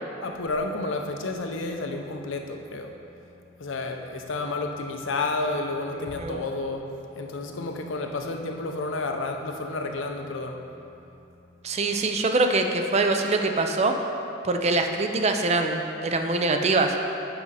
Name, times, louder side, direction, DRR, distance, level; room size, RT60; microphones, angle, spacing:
voice 1, 0.2-2.9 3.6-10.6, left 2 dB, 80° left, 4 dB, 0.7 m, -31 dB
voice 2, 5.9-6.4 11.6-14.1 14.4-17.0, right 3 dB, 35° right, 5 dB, 0.5 m, -24 dB
7.9 x 5.3 x 4.8 m, 2.8 s
head